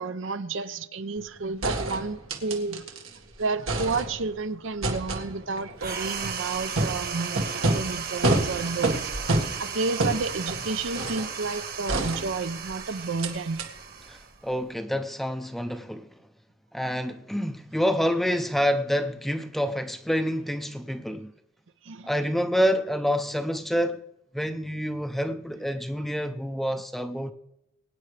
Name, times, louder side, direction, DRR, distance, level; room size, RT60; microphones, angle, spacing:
voice 1, 0.0-2.8 3.4-9.2 9.6-13.7 21.8-22.1, right 3 dB, 65° right, 0.7 m, -31 dB
sound 1, 1.2-1.3 1.6-3.2 3.4-4.4 4.8-11.3 11.9-12.7 13.2-13.3 13.6-13.7, right 2 dB, 85° right, 1.9 m, -29 dB
sound 2, 5.8-14.7, right 6 dB, 50° right, 1.3 m, -35 dB
voice 2, 14.1-16.1 16.7-21.3 22.1-24.0 24.3-27.3, equal, ahead, 0.6 m, -27 dB
22.0 x 9.6 x 3.3 m
head